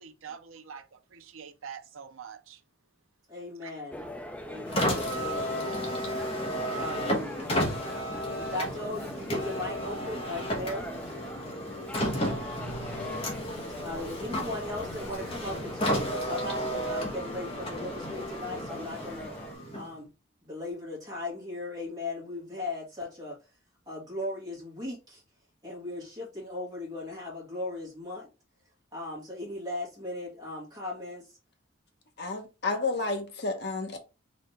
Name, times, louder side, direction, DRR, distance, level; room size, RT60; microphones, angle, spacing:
voice 1, 0.0-2.6 3.6-3.7, right 7 dB, 80° right, 0.6 m, -45 dB
voice 2, 3.3-4.0 4.4-5.6 6.8-7.5 8.5-10.9 13.8-19.3 19.7-20.1 20.4-23.4 23.9-25.2 25.6-28.3 28.9-31.3, left 2 dB, 20° right, 1.8 m, -37 dB
sound 1, 3.9-19.6, equal, 5° left, 0.4 m, -42 dB
Car, 4.6-20.1, equal, 30° left, 1.1 m, -33 dB
voice 3, 32.2-34.0, left 3 dB, 55° left, 1.0 m, -31 dB
4.2 x 3.3 x 3.3 m
head